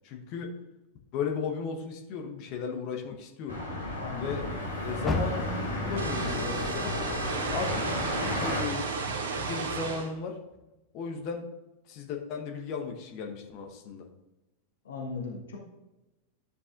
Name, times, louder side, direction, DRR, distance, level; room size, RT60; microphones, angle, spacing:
voice 1, 0.0-0.5 1.1-3.6 4.2-4.4 4.8-6.9 7.5-9.0 9.4-10.4 10.9-11.4 11.9-14.1, left 5 dB, 40° left, 3 dB, 1.1 m, -35 dB
sound 1, 3.5-8.6, left 1 dB, 90° left, 2.7 m, -33 dB
voice 2, 3.9-4.6 14.8-15.6, left 3 dB, 65° left, 0 dB, 1.4 m, -38 dB
Car, 5.0-8.3 8.7-10.1 10.5-10.6 11.2-11.3, left 1 dB, 10° left, 0.9 m, -37 dB
sound 2, 6.0-10.1, right 4 dB, 60° right, 1.0 m, -33 dB
13.0 x 6.9 x 2.5 m, 1.0 s
figure-of-eight pair, 90°, 0 cm